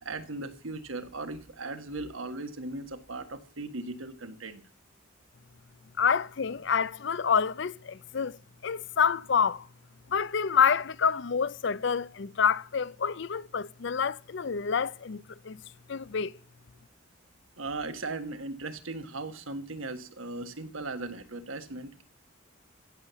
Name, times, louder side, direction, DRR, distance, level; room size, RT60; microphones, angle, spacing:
voice 1, 0.0-4.6 17.6-22.0, right 2 dB, 75° right, 1.4 m, -38 dB
voice 2, 6.0-8.4 8.6-9.7 10.1-15.6 15.9-16.4, left 6 dB, 55° left, 0.5 m, -27 dB
15.5 x 7.3 x 6.8 m
head